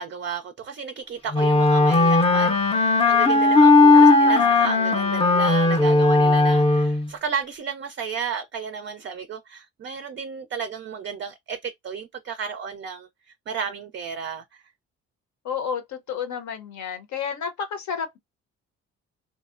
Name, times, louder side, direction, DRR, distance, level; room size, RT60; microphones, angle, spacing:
voice 1, 0.0-13.1 13.5-14.6, right 6 dB, 40° right, 0.4 m, -33 dB
Wind instrument woodwind instrument, 1.3-7.1, left 3 dB, 20° left, 0.5 m, -17 dB
voice 2, 3.9-4.7 15.4-18.2, left 7 dB, 70° left, 0.8 m, -31 dB
2.7 x 2.0 x 2.4 m
cardioid pair, 90°, 30 cm